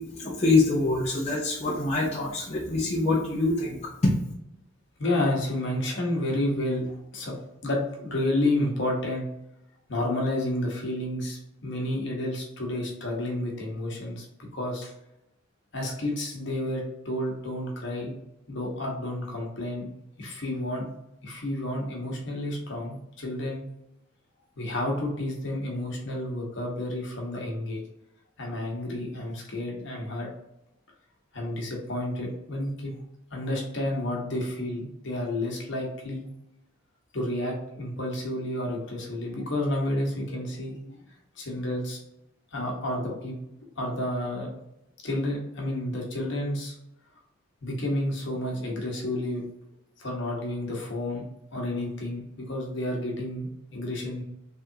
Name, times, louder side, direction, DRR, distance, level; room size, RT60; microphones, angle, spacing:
voice 1, 0.0-3.8 4.0-4.1, left 2 dB, 30° left, -6 dB, 0.7 m, -25 dB
voice 2, 5.0-7.3 7.6-9.2 9.9-14.2 14.5-14.9 15.7-18.1 18.5-19.9 20.2-20.9 21.2-23.6 24.6-27.8 28.4-30.3 31.3-32.9 33.3-36.3 37.1-41.0 41.4-42.0 42.5-44.5 45.0-46.7 47.6-49.4 50.0-51.2 51.5-54.2, left 1 dB, 60° left, -1 dB, 1.2 m, -30 dB
3.5 x 3.4 x 2.8 m, 0.85 s
head